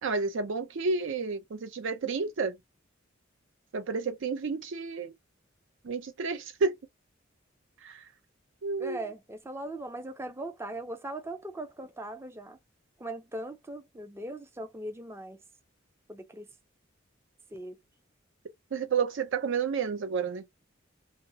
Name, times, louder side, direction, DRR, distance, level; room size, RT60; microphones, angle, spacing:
voice 1, 0.0-2.6 3.7-5.1 5.8-6.7 7.8-8.0 8.6-9.0 18.7-20.4, right 5 dB, 65° right, 0.5 m, -30 dB
voice 2, 8.8-12.6 13.0-15.4 16.1-16.5 17.5-17.8, right 1 dB, 10° right, 0.4 m, -39 dB
2.8 x 2.0 x 2.6 m
head